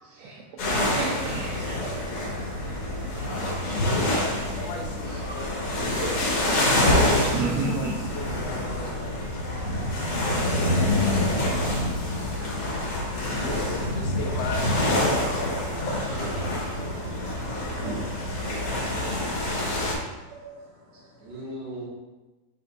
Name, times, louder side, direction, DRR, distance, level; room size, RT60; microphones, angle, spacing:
voice 1, 0.0-4.3 5.0-5.4 5.8-8.0 10.3-10.8 12.1-14.0 16.2-16.3 17.6-18.2 18.7-20.0 20.3-21.4, right 3 dB, 75° right, -3 dB, 1.6 m, -37 dB
sound 1, 0.6-19.9, left 1 dB, 55° left, 2.0 m, -26 dB
voice 2, 3.3-5.6 7.4-8.9 13.9-16.9 21.0-21.1, left 4 dB, 75° left, 2 dB, 2.2 m, -38 dB
voice 3, 6.6-7.0 8.8-8.9 17.0-17.6 18.9-19.1 21.2-21.8, right 1 dB, 45° right, -13 dB, 2.6 m, -38 dB
6.8 x 3.5 x 4.1 m, 1.2 s
omnidirectional pair, 3.8 m